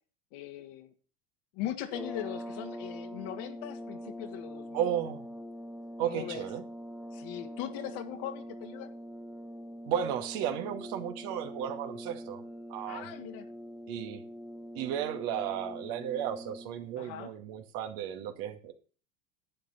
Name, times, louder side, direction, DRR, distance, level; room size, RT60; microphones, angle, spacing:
voice 1, 0.3-0.9 1.5-4.8 6.0-6.5 7.1-8.9 12.8-13.5 17.0-17.3, left 12 dB, 60° left, 6 dB, 2.1 m, -40 dB
sound 1, 1.8-17.0, equal, ahead, 0.9 m, -43 dB
voice 2, 4.7-5.3 6.0-6.6 9.9-12.4 12.7-13.1 13.9-14.2 14.7-18.7, right 10 dB, 60° right, 6 dB, 2.2 m, -34 dB
11.5 x 9.0 x 4.2 m, 0.39 s
hypercardioid pair, 95°, 38 cm